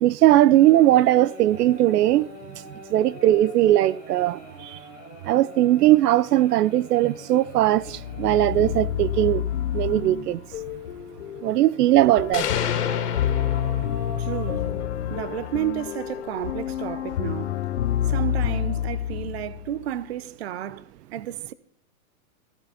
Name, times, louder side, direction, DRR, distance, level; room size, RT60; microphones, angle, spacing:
voice 1, 0.0-2.3 2.9-4.8 5.2-9.4 9.7-10.4 11.4-12.4, right 14 dB, 85° right, 0.6 m, -19 dB
sound 1, 0.5-8.7 9.8-9.9 10.7-11.1 11.4-11.5 12.7-14.8, left 1 dB, 10° right, 7.2 m, -43 dB
sound 2, 7.8-19.8, left 11 dB, 50° left, 0.6 m, -28 dB
sound 3, 12.3-14.3, left 9 dB, 85° left, 2.1 m, -29 dB
voice 2, 14.2-14.7 15.1-17.6 18.1-20.8 21.1-21.5, right 12 dB, 45° right, 0.5 m, -31 dB
14.5 x 11.0 x 4.2 m
supercardioid pair, 175°, 46 cm